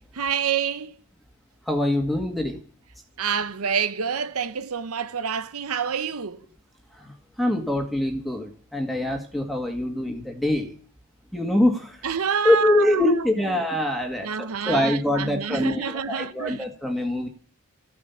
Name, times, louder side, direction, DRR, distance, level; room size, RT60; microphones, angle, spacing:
voice 1, 0.1-0.9 3.2-6.4 12.0-13.1 14.2-16.6, right 7 dB, 75° right, 0.8 m, -27 dB
voice 2, 1.7-2.6 6.9-7.1 7.4-10.7 11.3-12.0 12.4-17.3, left 1 dB, ahead, 1.9 m, -24 dB
14.5 x 9.8 x 7.1 m
head